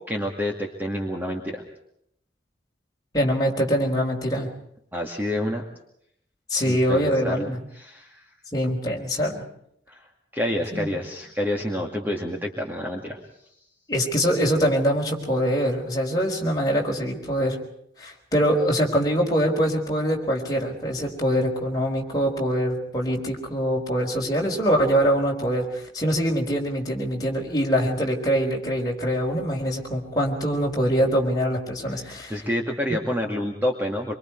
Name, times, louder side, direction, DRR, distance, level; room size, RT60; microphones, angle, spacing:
voice 1, 0.1-1.6 4.9-5.6 6.5-8.3 9.9-10.1 10.3-13.2 31.9-34.1, left 1 dB, 10° right, 1 dB, 2.2 m, -28 dB
voice 2, 3.1-4.5 6.5-7.6 8.5-9.4 10.7-10.9 13.9-17.6 18.0-32.4, equal, 20° left, -1 dB, 4.6 m, -24 dB
26.0 x 24.5 x 4.6 m, 0.71 s
head